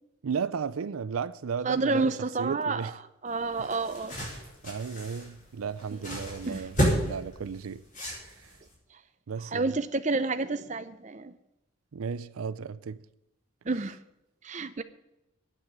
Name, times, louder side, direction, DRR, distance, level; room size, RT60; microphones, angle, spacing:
voice 1, 0.2-2.9 3.6-3.7 4.6-7.8 8.2-8.5 9.3-9.7 11.9-13.0, right 6 dB, 85° right, 0.5 m, -34 dB
voice 2, 1.6-2.8 3.2-4.2 6.5-6.6 9.5-11.3 13.7-14.0 14.4-14.8, right 3 dB, 35° right, 0.6 m, -29 dB
sound 1, 3.3-8.7, equal, 35° left, 4.4 m, -32 dB
8.9 x 7.9 x 9.2 m
head